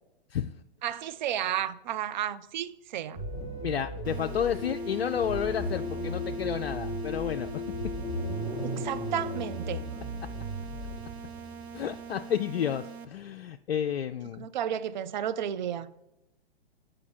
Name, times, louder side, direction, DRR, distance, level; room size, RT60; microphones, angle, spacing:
voice 1, 0.8-3.2 8.8-9.9 14.4-16.0, right 10 dB, 45° right, 0.4 m, -32 dB
sound 1, 3.1-10.4, left 5 dB, 20° left, 0.5 m, -39 dB
sound 2, 3.2-12.5, right 1 dB, ahead, 1.1 m, -37 dB
voice 2, 3.6-7.6 11.7-14.5, left 9 dB, 70° left, 0.5 m, -31 dB
sound 3, 4.0-13.0, right 6 dB, 75° right, 0.8 m, -44 dB
7.1 x 5.1 x 4.3 m
figure-of-eight pair, 120°, 32 cm